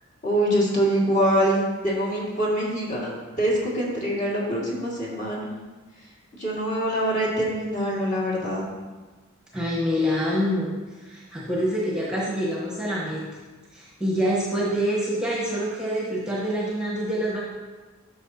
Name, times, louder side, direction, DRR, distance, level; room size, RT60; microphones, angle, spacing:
voice 1, 0.2-5.5 6.3-8.7, equal, 35° left, -5 dB, 2.0 m, -24 dB
voice 2, 9.5-10.7 11.0-13.2 13.7-17.4, equal, 5° right, -6 dB, 1.1 m, -26 dB
11.5 x 5.9 x 2.8 m, 1.3 s
head